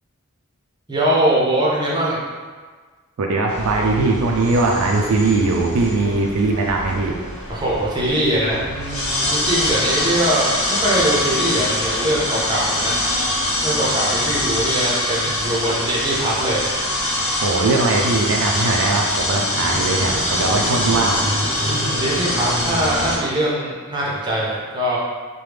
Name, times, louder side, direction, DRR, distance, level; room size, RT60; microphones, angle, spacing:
voice 1, 0.9-2.2 7.5-12.9 13.6-16.7 21.6-25.0, right 1 dB, 20° right, -6 dB, 0.6 m, -22 dB
voice 2, 3.2-7.1 17.4-21.2, right 3 dB, 85° right, 0 dB, 0.4 m, -20 dB
sound 1, 3.5-23.2, left 1 dB, 80° left, 0.8 m, -24 dB
3.1 x 2.2 x 3.3 m, 1.5 s
head